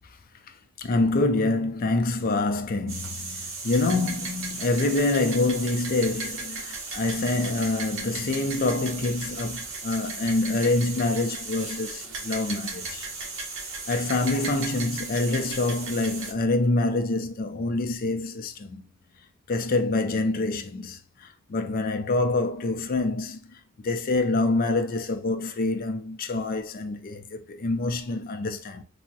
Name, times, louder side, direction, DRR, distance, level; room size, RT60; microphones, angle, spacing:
voice 1, 0.8-13.1 13.9-18.8 19.5-21.0 21.5-23.4 23.8-28.8, left 2 dB, 40° left, 0.4 m, -26 dB
sound 1, 2.9-16.3, right 3 dB, 65° right, 0.8 m, -36 dB
3.4 x 2.1 x 2.6 m
head